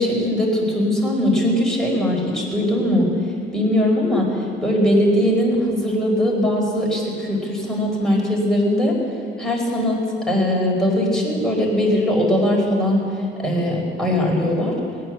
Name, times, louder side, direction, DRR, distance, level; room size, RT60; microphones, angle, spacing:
voice 1, 0.0-9.0 9.4-14.7, left 1 dB, ahead, -3 dB, 4.9 m, -20 dB
19.5 x 9.4 x 7.7 m, 2.4 s
cardioid pair, 90°, 20 cm